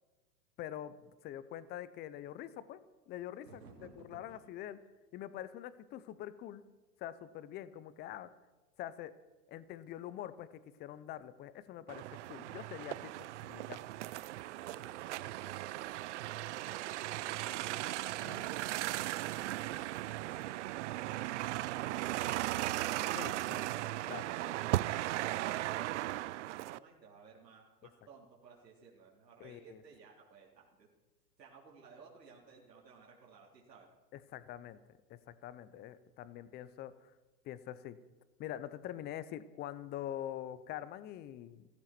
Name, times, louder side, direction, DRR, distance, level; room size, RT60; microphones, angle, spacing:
voice 1, 0.6-2.8 3.1-3.6 4.0-4.8 5.1-6.6 7.0-8.3 8.8-9.2 9.5-12.0 12.3-13.8 18.2-18.5 23.1-23.6 24.1-24.3 29.4-29.8 34.1-34.8 35.1-37.1 37.4-38.0 38.4-41.7, left 12 dB, 20° left, 15 dB, 0.7 m, -45 dB
voice 2, 3.5-4.4 24.2-30.9 31.4-33.9, right 5 dB, 85° right, -4 dB, 3.7 m, -58 dB
sound 1, 11.9-26.8, right 16 dB, 50° right, 0.4 m, -37 dB
14.5 x 14.0 x 6.0 m, 1.2 s
hypercardioid pair, 125°, 48 cm